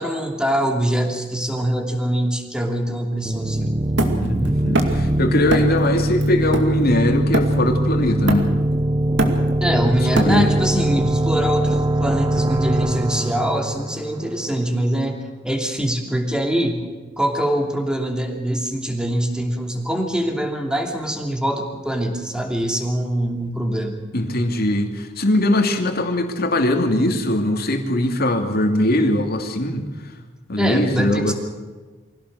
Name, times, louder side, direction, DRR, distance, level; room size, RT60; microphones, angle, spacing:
voice 1, 0.0-3.7 9.6-15.2 15.4-16.9 17.2-24.0 30.6-31.3, right 1 dB, 5° right, 3 dB, 2.8 m, -23 dB
sound 1, 3.3-14.8, right 1 dB, 20° right, 0.6 m, -22 dB
Hammer, 4.0-5.1 5.5-5.8 6.2-7.8 8.3-8.7 9.0-10.7, right 1 dB, 65° right, 2.5 m, -24 dB
voice 2, 4.2-8.5 10.1-10.5 24.1-29.9 30.5-31.3, left 1 dB, 55° left, 5 dB, 2.6 m, -21 dB
24.5 x 16.5 x 6.5 m, 1.4 s
head